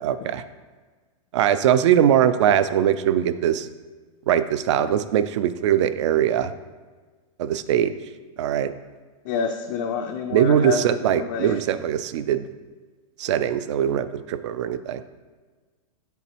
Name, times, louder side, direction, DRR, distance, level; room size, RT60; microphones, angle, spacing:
voice 1, 0.0-0.4 1.3-3.7 4.3-6.5 7.4-7.9 8.4-8.7 10.3-12.4 13.2-15.0, right 10 dB, 55° right, 13 dB, 0.4 m, -21 dB
voice 2, 9.2-11.6, left 5 dB, 35° left, 3 dB, 0.3 m, -28 dB
7.0 x 4.1 x 4.4 m, 1.4 s
supercardioid pair, 170°, 18 cm